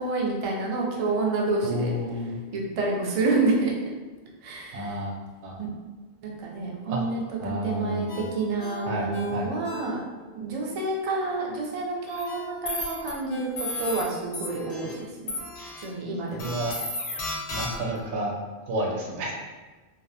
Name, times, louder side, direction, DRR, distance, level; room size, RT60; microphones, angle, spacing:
voice 1, 0.0-1.9 2.5-3.7 4.4-5.0 5.6-5.7 6.2-10.0 10.3-15.4 15.8-16.5, right 3 dB, 55° right, -2 dB, 0.4 m, -28 dB
voice 2, 1.6-2.4 4.7-5.1 5.4-5.6 6.9-7.0 7.4-8.3 8.9-9.5 16.3-16.8 17.5-18.3 18.7-19.3, equal, 85° right, -1 dB, 0.9 m, -30 dB
Ringtone, 8.1-10.3 10.7-10.8 12.3-14.5 14.9-15.0, left 3 dB, 85° left, 0.9 m, -42 dB
sound 1, 12.1-12.2 12.7-13.1 13.6-14.0 14.3-14.9 15.3-15.8 16.4-18.0, left 2 dB, 50° left, 0.5 m, -33 dB
2.6 x 2.0 x 2.7 m, 1.2 s
omnidirectional pair, 1.1 m